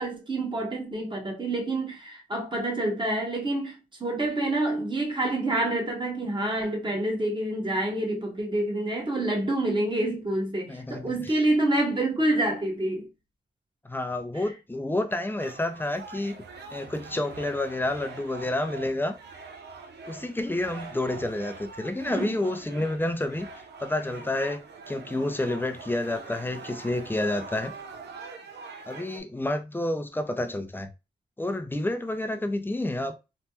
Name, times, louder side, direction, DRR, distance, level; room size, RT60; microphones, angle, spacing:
voice 1, 0.0-13.1 22.1-22.4, right 1 dB, 25° right, 1.2 m, -27 dB
voice 2, 10.7-11.4 13.8-16.4 16.7-19.2 20.1-23.5 23.8-27.7 28.9-30.9 31.4-33.1, left 1 dB, 10° left, 0.5 m, -29 dB
sound 1, 15.4-29.2, right 4 dB, 75° right, 0.6 m, -44 dB
3.2 x 2.2 x 2.9 m
cardioid pair, 70°, 18 cm